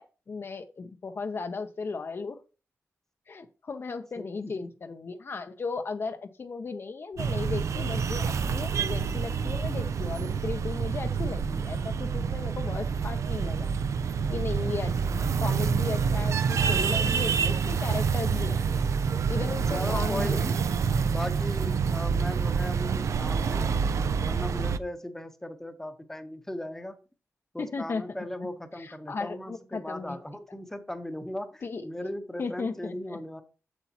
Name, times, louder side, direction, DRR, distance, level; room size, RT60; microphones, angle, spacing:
voice 1, 0.0-2.4 3.3-13.7 14.3-18.8 19.3-20.4 27.6-28.5 28.8-30.2 31.6-31.9 32.4-33.2, left 4 dB, 50° left, 0.7 m, -36 dB
voice 2, 4.2-4.7 14.2-14.7 19.7-23.7 24.2-27.0 27.5-33.4, left 1 dB, 5° left, 0.8 m, -38 dB
sound 1, 7.1-14.8, right 3 dB, 90° right, 0.9 m, -41 dB
sound 2, 7.2-24.8, right 6 dB, 70° right, 0.5 m, -27 dB
8.0 x 7.1 x 2.9 m
wide cardioid pair, 110°, 5 cm